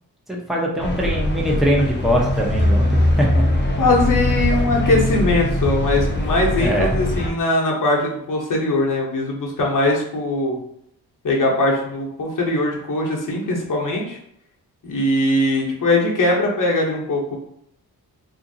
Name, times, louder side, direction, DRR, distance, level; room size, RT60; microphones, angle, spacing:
voice 1, 0.3-3.5 6.6-6.9, equal, ahead, -2 dB, 0.8 m, -22 dB
sound 1, 0.8-7.3, left 1 dB, 30° left, 0.8 m, -21 dB
voice 2, 3.7-10.6 11.2-14.2 14.8-17.4, left 2 dB, 55° left, -2 dB, 0.9 m, -21 dB
2.8 x 2.6 x 2.7 m, 0.73 s
cardioid pair, 50°, 38 cm